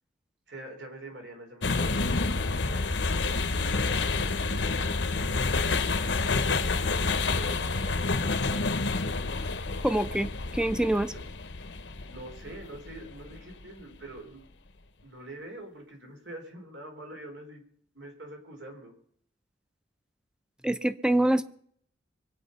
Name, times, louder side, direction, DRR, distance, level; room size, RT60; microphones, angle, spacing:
voice 1, 0.5-5.5 6.1-8.8 11.1-11.2 12.0-14.4 15.0-17.6 17.9-18.9, right 1 dB, 75° right, 4.4 m, -46 dB
sound 1, 1.6-13.7, left 3 dB, 75° left, 1.0 m, -29 dB
voice 2, 9.8-11.1 20.6-21.4, right 1 dB, 5° right, 0.7 m, -25 dB
24.0 x 9.0 x 5.5 m
head